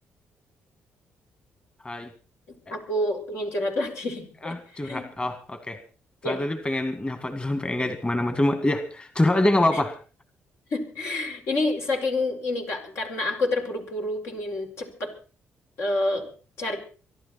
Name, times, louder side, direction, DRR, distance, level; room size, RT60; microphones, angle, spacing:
voice 1, 2.7-5.1 6.2-6.4 9.7-9.8 10.7-15.1 15.8-16.3 16.6-16.8, left 2 dB, 75° left, 2 dB, 4.7 m, -28 dB
voice 2, 4.4-5.8 6.3-10.0, left 1 dB, 25° left, 8 dB, 2.0 m, -25 dB
24.5 x 12.0 x 4.3 m, 0.37 s
cardioid pair, 70°, 5 cm